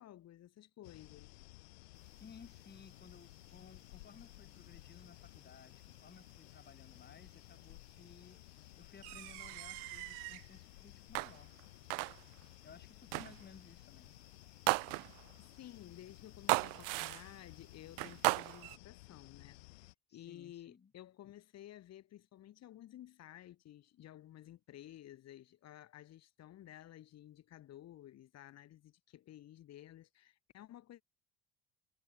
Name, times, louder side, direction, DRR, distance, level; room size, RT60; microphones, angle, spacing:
voice 1, 0.0-1.4 15.4-31.0, left 13 dB, 55° left, 6.6 m, -54 dB
sound 1, 0.8-19.9, left 22 dB, 75° left, 3.8 m, -57 dB
voice 2, 2.0-8.4 8.8-11.5 12.6-14.1 20.1-20.9, left 6 dB, 30° left, 6.4 m, -58 dB
sound 2, 9.0-10.5 11.1-11.6 11.9-12.4 13.1-13.5 14.7-15.4 16.5-17.4 18.0-18.8, right 38 dB, 70° right, 1.4 m, -36 dB
hypercardioid pair, 70°, 32 cm